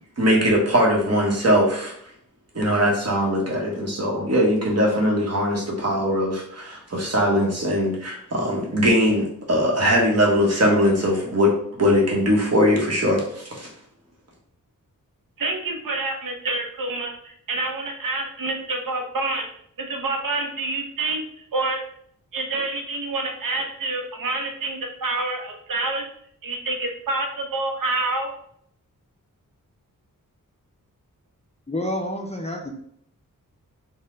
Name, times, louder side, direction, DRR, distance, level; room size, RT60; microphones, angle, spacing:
voice 1, 0.2-1.9 2.5-13.7, equal, 50° right, -2 dB, 1.1 m, -21 dB
voice 2, 15.4-19.5 19.8-21.8 22.3-26.0 26.4-28.3, right 2 dB, 75° right, 3 dB, 0.7 m, -27 dB
voice 3, 31.7-32.7, left 1 dB, 20° left, 2 dB, 0.4 m, -28 dB
4.1 x 2.2 x 3.7 m, 0.68 s
wide cardioid pair, 150°, 33 cm